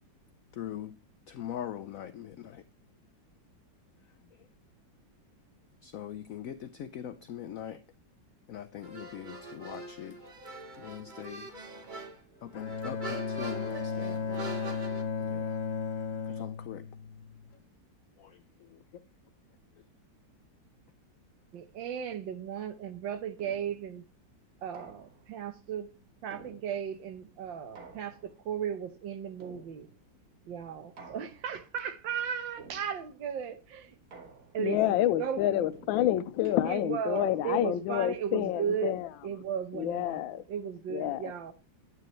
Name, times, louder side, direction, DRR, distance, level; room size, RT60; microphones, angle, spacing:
voice 1, 0.5-0.9 1.3-2.6 5.8-7.8 8.5-10.2 10.8-11.5 12.4-14.6 15.2-15.6 16.3-16.8 18.2-18.7, left 10 dB, 75° left, 0.7 m, -42 dB
sound 1, 8.8-15.0, right 2 dB, 30° right, 1.1 m, -43 dB
Bowed string instrument, 12.5-17.6, left 5 dB, 50° left, 1.1 m, -35 dB
voice 2, 21.5-24.0 24.6-25.9 26.2-29.9 30.5-34.0 34.5-35.7 36.6-38.9 39.2-41.5, right 8 dB, 80° right, 1.7 m, -36 dB
sound 2, 23.4-23.9 24.7-25.4 26.3-27.1 27.7-28.5 29.4-30.1 31.0-31.7 32.6-33.2 34.1-34.8 35.7-37.8, right 4 dB, 55° right, 2.0 m, -53 dB
voice 3, 34.6-39.0 39.7-40.4 40.9-41.2, left 12 dB, 90° left, 1.4 m, -28 dB
9.3 x 9.2 x 3.0 m
omnidirectional pair, 2.0 m